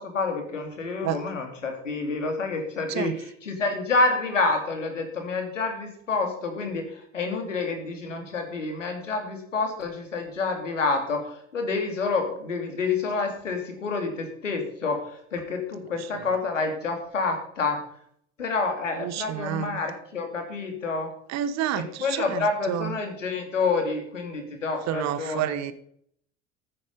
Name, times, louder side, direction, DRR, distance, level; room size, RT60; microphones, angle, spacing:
voice 1, 0.0-17.8 18.4-21.1 21.7-25.7, left 3 dB, 80° left, 5 dB, 2.6 m, -28 dB
voice 2, 19.0-19.8 21.3-22.9 24.9-25.7, right 11 dB, 45° right, 14 dB, 1.2 m, -29 dB
14.5 x 8.5 x 5.3 m, 0.67 s
figure-of-eight pair, 60°, 37 cm